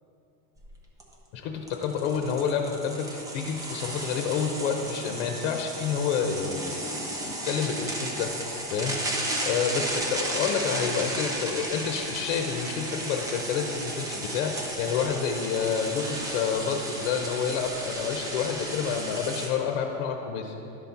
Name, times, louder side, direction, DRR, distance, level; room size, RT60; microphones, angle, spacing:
sound 1, 0.6-0.7 1.0-1.1 1.7-19.5, right 1 dB, 10° right, 0.6 m, -34 dB
voice 1, 1.3-8.4 8.7-9.2 9.4-20.5, left 6 dB, 80° left, 4 dB, 0.8 m, -29 dB
12.0 x 4.1 x 5.8 m, 3.0 s
cardioid pair, 175°, 36 cm